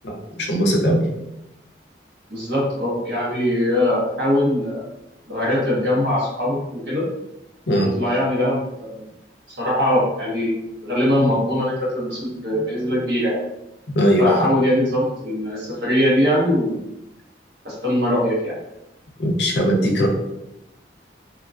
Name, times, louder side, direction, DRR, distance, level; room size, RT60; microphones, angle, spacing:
voice 1, 0.0-1.0 7.7-7.9 13.9-14.5 19.2-20.1, equal, 70° left, 1 dB, 0.6 m, -19 dB
voice 2, 2.3-4.8 5.3-7.1 8.0-9.0 9.5-13.4 14.2-16.8 17.6-18.5, left 1 dB, 65° right, -6 dB, 1.2 m, -21 dB
2.7 x 2.4 x 2.5 m, 0.88 s
head